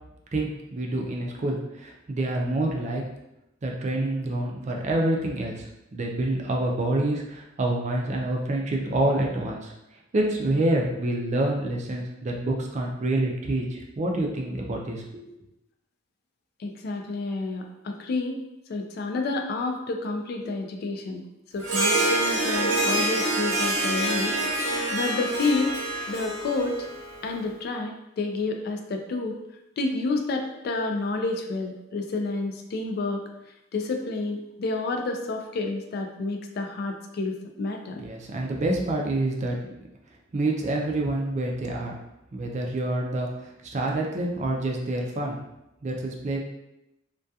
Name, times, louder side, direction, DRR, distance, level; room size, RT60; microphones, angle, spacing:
voice 1, 0.3-3.0 3.6-9.7 10.1-15.3 38.0-39.6 40.3-42.0 42.3-43.3 43.6-45.4 45.8-46.4, right 1 dB, 35° right, 0 dB, 0.4 m, -27 dB
voice 2, 16.6-18.4 18.7-21.3 21.5-25.8 26.1-26.8 27.2-29.4 29.8-33.2 33.7-38.0, left 3 dB, 55° left, 3 dB, 0.3 m, -29 dB
Harp, 21.6-27.3, right 1 dB, 80° right, 0.7 m, -26 dB
2.3 x 2.2 x 2.6 m, 0.89 s
head